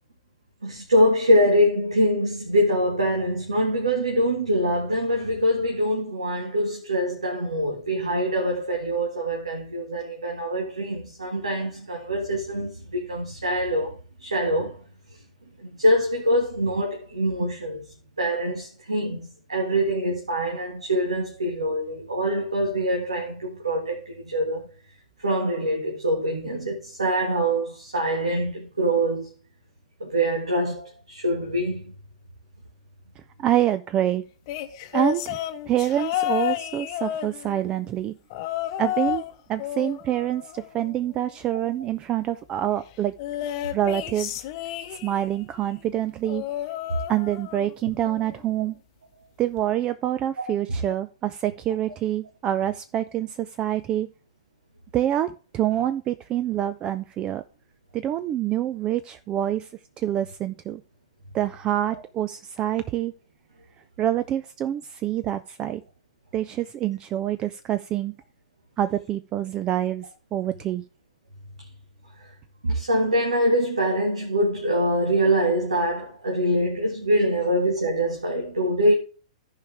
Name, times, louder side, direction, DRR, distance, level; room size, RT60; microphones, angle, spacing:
voice 1, 0.6-14.8 15.6-17.8 18.2-24.7 25.2-29.3 30.0-31.9 46.9-47.0 72.6-78.9, equal, 80° right, 1.8 m, -24 dB
voice 2, 33.4-34.2 34.9-35.4 35.7-38.1 38.8-39.2 39.5-43.1 43.7-44.3 44.9-46.4 47.1-48.7 49.4-54.1 54.9-57.4 57.9-59.7 60.0-60.8 61.3-63.1 64.0-65.8 66.3-68.1 68.8-70.8, right 12 dB, 25° right, 0.4 m, -26 dB
sound 1, 34.5-37.8 38.3-39.3 39.6-41.1 43.2-45.4 46.3-47.7 48.1-48.4 49.6-49.7, left 13 dB, 45° left, 0.8 m, -31 dB
14.0 x 5.0 x 3.4 m
figure-of-eight pair, 110°, 3 cm